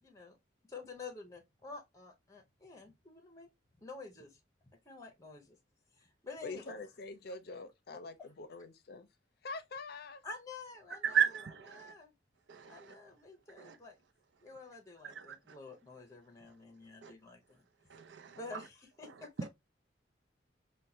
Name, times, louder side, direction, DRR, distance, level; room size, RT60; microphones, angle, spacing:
voice 1, 0.0-0.4 0.7-3.5 3.8-5.6 6.0-6.6 10.2-11.2 11.7-12.1 12.7-14.0 14.4-17.7 18.3-19.3, left 3 dB, 15° left, 0.7 m, -49 dB
voice 2, 6.4-9.1 9.4-10.2, left 3 dB, 55° left, 0.5 m, -45 dB
voice 3, 10.9-11.9 12.5-13.0 13.6-13.8 15.0-15.6 17.0-17.1 17.9-18.6 19.0-19.5, right 8 dB, 80° right, 0.5 m, -35 dB
4.5 x 2.2 x 2.6 m
head